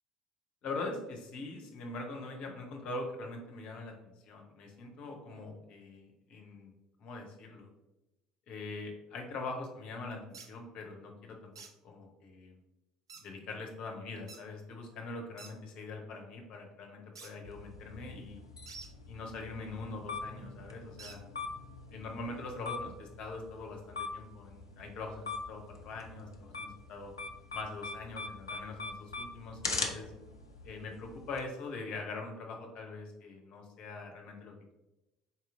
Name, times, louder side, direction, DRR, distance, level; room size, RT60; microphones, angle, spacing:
voice 1, 0.6-6.7 7.0-7.7 8.5-11.5 11.8-12.6 13.2-18.4 19.1-21.2 21.9-27.1 27.5-30.1 30.6-34.7, left 3 dB, 50° left, 2 dB, 0.9 m, -43 dB
sound 1, 10.3-10.5 11.5-11.7 13.1-13.2 14.3-14.4 15.4-15.5 17.1-17.3 18.7-18.9 21.0-21.2, right 4 dB, 80° right, 0.4 m, -48 dB
sound 2, 17.4-31.4, left 3 dB, 85° left, 0.4 m, -42 dB
4.2 x 2.9 x 3.6 m, 0.98 s
figure-of-eight pair, 60°, 2 cm